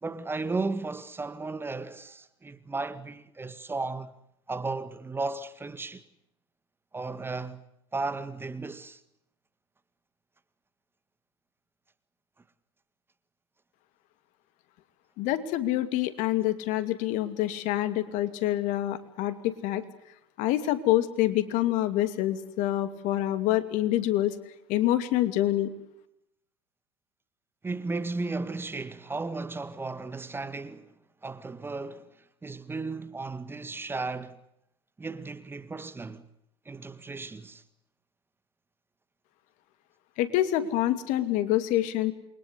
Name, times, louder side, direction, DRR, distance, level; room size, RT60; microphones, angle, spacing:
voice 1, 0.0-4.1 4.5-6.0 6.9-7.6 7.9-9.0 27.6-30.9 31.2-32.1 32.4-34.4 35.0-36.2 36.7-37.6, right 3 dB, 15° right, 1.9 m, -35 dB
voice 2, 15.2-19.8 20.4-24.4 24.7-25.7 40.2-42.1, left 14 dB, 60° left, 2.7 m, -26 dB
28.5 x 23.5 x 8.2 m
hypercardioid pair, 90°, 15 cm